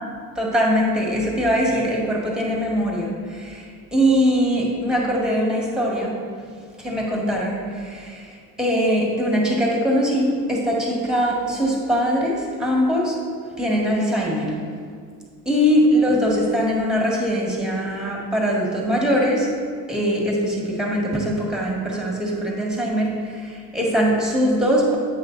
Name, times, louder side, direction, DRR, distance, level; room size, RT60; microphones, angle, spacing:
voice 1, 0.3-6.2 6.8-13.2 13.6-14.6 15.4-19.5 19.9-25.0, equal, ahead, -2 dB, 1.7 m, -22 dB
8.6 x 5.7 x 3.9 m, 2.1 s
cardioid pair, 110°, 36 cm